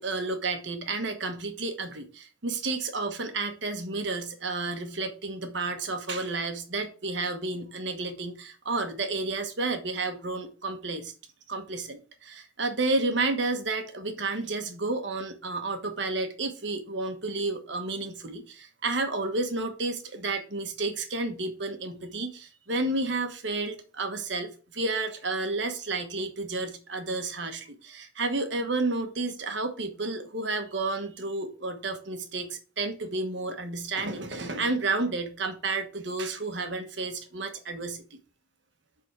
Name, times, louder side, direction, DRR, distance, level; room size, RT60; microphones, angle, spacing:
voice 1, 0.0-11.1 11.5-38.2, right 3 dB, 65° right, 1.2 m, -31 dB
7.6 x 3.9 x 6.0 m
head